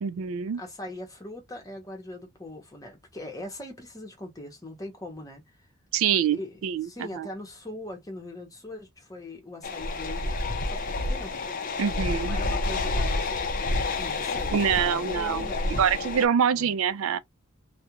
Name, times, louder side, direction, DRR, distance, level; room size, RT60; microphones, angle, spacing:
voice 1, 0.0-0.6 5.9-7.3 11.8-12.4 14.5-15.5 15.8-17.2, right 7 dB, 75° right, 0.3 m, -25 dB
voice 2, 0.6-5.4 6.1-6.6 6.8-10.3 10.6-10.8 11.1-11.4 12.0-15.7 16.5-16.7, left 1 dB, 15° left, 0.8 m, -41 dB
sound 1, 9.6-16.3, left 2 dB, 40° left, 0.5 m, -29 dB
2.4 x 2.1 x 2.8 m
head